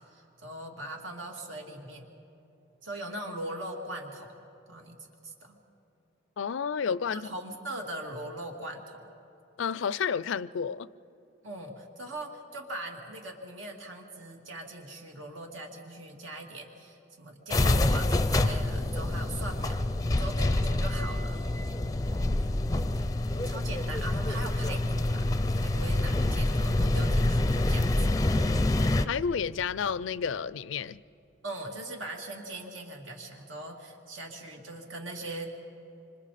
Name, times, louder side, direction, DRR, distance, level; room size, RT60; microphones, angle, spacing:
voice 1, 0.0-2.1 2.8-4.4 4.7-5.6 7.1-9.0 11.4-21.5 23.4-27.9 31.4-35.6, right 1 dB, 80° right, 2.4 m, -40 dB
voice 2, 6.4-7.3 9.6-10.9 29.1-31.0, left 6 dB, 75° left, 0.4 m, -30 dB
sound 1, 17.5-29.1, left 2 dB, 20° left, 0.5 m, -26 dB
26.5 x 25.5 x 4.2 m
head